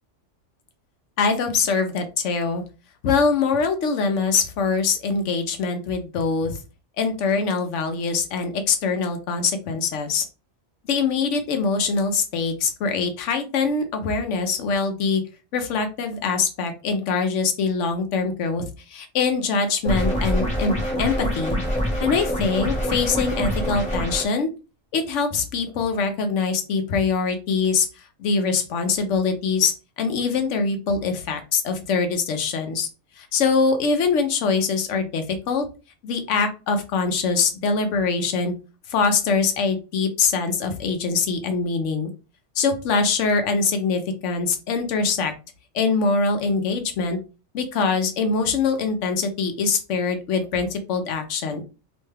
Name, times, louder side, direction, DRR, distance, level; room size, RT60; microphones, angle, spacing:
voice 1, 1.2-2.6 3.0-6.6 7.0-10.3 10.9-15.2 15.5-21.6 22.0-24.5 24.9-27.9 28.2-32.9 33.2-35.7 36.0-38.5 38.9-42.1 42.6-45.3 45.7-47.2 47.5-51.6, left 4 dB, 75° left, 7 dB, 1.0 m, -23 dB
sound 1, 19.8-24.2, equal, 5° left, 0.8 m, -25 dB
3.0 x 2.2 x 3.2 m, 0.32 s
omnidirectional pair, 1.3 m